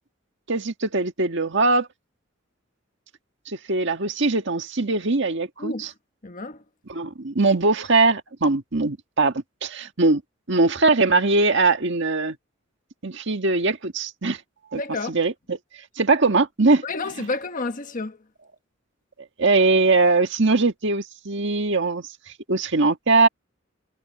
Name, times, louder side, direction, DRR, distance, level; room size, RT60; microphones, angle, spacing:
voice 1, 0.5-1.9 3.5-5.9 6.9-9.3 9.6-10.2 10.5-12.3 13.0-14.4 14.7-14.8 15.1-15.6 16.0-16.8 17.2-17.3 19.4-22.1 22.5-23.3, right 3 dB, 60° right, 1.8 m, -21 dB
voice 2, 5.6-5.9 6.2-6.6 14.7-15.1 16.8-18.2, left 3 dB, 40° left, 1.4 m, -30 dB
head